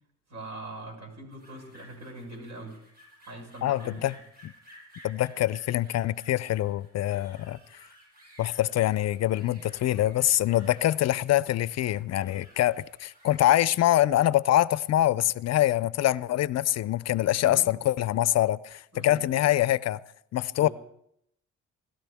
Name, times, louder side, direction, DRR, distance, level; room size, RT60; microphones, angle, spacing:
voice 1, 0.3-2.8 3.2-4.1 17.1-17.7 18.9-19.4 20.6-20.7, right 1 dB, 60° right, 6.3 m, -42 dB
sound 1, 1.3-13.5, equal, 30° right, 7.7 m, -55 dB
voice 2, 3.6-4.1 4.4-4.5 5.0-7.6 8.4-20.0 20.3-20.7, left 13 dB, 60° left, 0.5 m, -24 dB
27.0 x 13.0 x 3.5 m
cardioid pair, 90°, 30 cm